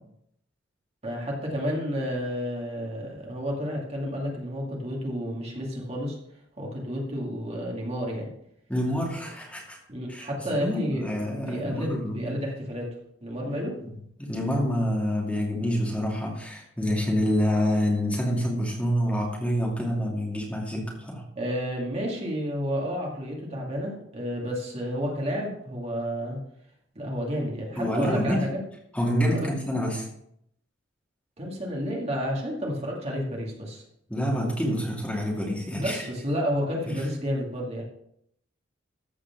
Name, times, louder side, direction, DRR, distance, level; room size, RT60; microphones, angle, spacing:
voice 1, 1.0-6.2 6.6-8.3 9.9-11.1 11.5-13.8 21.4-26.4 26.9-28.6 29.3-29.5 31.4-33.8 35.8-37.8, equal, 35° right, -2 dB, 2.5 m, -31 dB
voice 2, 8.7-9.8 10.1-12.4 13.8-13.9 14.2-21.2 27.8-28.4 28.9-30.1 34.1-36.1 36.9-37.0, equal, 5° left, -3 dB, 2.5 m, -27 dB
14.5 x 5.0 x 6.0 m, 0.73 s
head